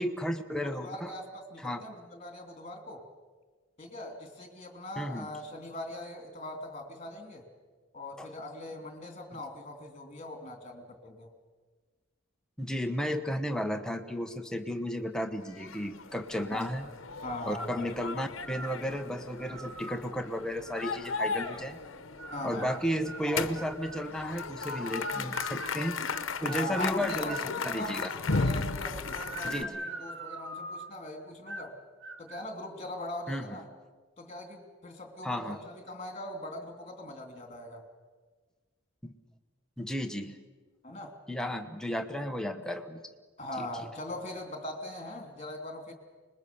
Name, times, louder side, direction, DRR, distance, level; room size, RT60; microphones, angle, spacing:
voice 1, 0.0-1.1 1.6-1.8 5.0-5.3 8.2-8.3 9.3-9.4 12.6-16.9 17.5-21.8 22.4-26.0 26.4-28.1 29.4-29.8 33.3-33.6 35.2-35.6 39.0-39.2 39.8-40.4 41.3-43.0 43.6-43.7, equal, 5° left, 5 dB, 1.2 m, -33 dB
voice 2, 0.6-3.0 3.8-7.4 7.9-11.3 16.5-16.7 17.2-17.9 22.3-22.8 26.4-31.7 32.2-33.7 34.2-37.8 40.8-41.1 43.4-45.9, left 1 dB, 30° left, 5 dB, 2.9 m, -41 dB
sound 1, 15.5-29.6, left 4 dB, 80° left, 1.0 m, -36 dB
sound 2, 18.4-18.9 19.4-20.0 20.6-21.6 22.2-24.1 24.7-27.5 28.0-28.6 29.0-31.0 31.5-31.8 32.0-32.5, right 2 dB, 70° right, 1.4 m, -42 dB
25.5 x 21.0 x 7.0 m, 1.4 s
head